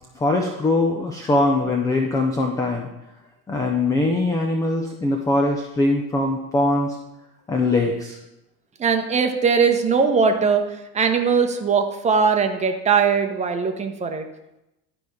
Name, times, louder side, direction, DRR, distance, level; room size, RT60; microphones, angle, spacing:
voice 1, 0.1-2.9 3.5-7.0 7.5-8.2, left 2 dB, 10° left, 3 dB, 0.4 m, -22 dB
voice 2, 8.8-10.6 10.9-14.2, right 5 dB, 15° right, 5 dB, 0.8 m, -20 dB
11.5 x 4.9 x 3.6 m, 0.91 s
figure-of-eight pair, 70°, 48 cm